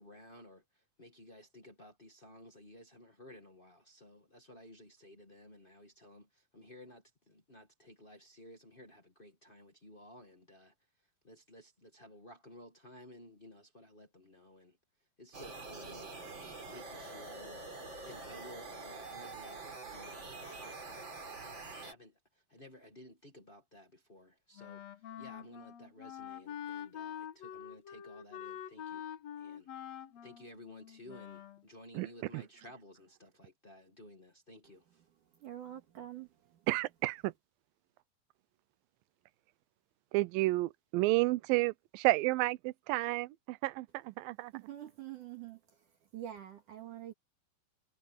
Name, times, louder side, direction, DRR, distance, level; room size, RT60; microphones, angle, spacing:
voice 1, 0.0-10.7 11.2-14.8 15.2-16.3 16.7-17.7 18.0-24.8 25.2-29.1 29.4-29.7 30.2-35.0, left 1 dB, 80° left, 0.4 m, -55 dB
sound 1, 15.3-21.9, right 3 dB, 35° right, 4.2 m, -46 dB
Wind instrument woodwind instrument, 24.6-31.6, left 9 dB, 60° left, 2.0 m, -46 dB
voice 2, 35.4-36.3 44.5-45.6 46.1-47.1, right 12 dB, 65° right, 3.3 m, -45 dB
voice 3, 36.7-37.3 40.1-44.5, right 20 dB, 85° right, 2.4 m, -31 dB
omnidirectional pair, 4.1 m